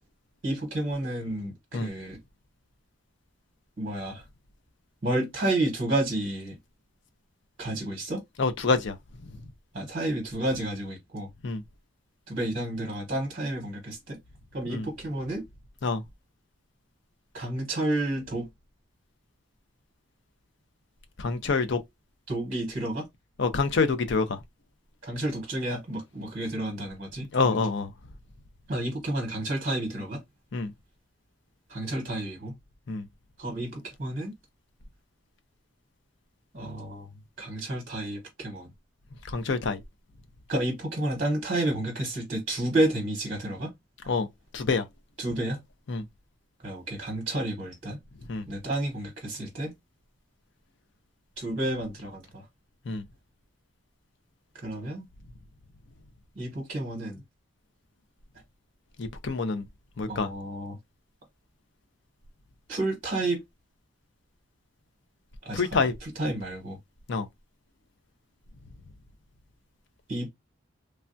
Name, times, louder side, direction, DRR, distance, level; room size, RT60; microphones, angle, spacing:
voice 1, 0.4-2.2 3.8-4.2 5.0-6.6 7.6-8.2 9.7-11.3 12.3-14.2 14.5-15.4 17.3-18.5 22.3-23.1 25.0-27.6 28.7-30.2 31.7-32.5 33.4-34.3 36.5-37.1 37.4-38.7 40.5-43.7 45.2-45.6 46.6-48.0 48.5-49.7 51.4-52.4 54.6-55.1 56.4-57.2 60.1-60.8 62.7-63.4 65.4-66.8 70.1-70.3, right 1 dB, 40° right, 0.9 m, -30 dB
voice 2, 8.4-8.9 11.4-11.6 14.7-14.9 15.8-16.0 21.2-21.8 23.4-24.4 27.3-27.9 30.5-30.7 32.9-33.1 39.3-39.8 44.1-44.3 44.5-44.8 45.9-46.0 48.3-48.4 52.9-53.0 59.0-59.7 60.0-60.3 65.5-65.9 67.1-67.3, left 4 dB, 60° left, 0.5 m, -26 dB
3.2 x 2.2 x 2.5 m
head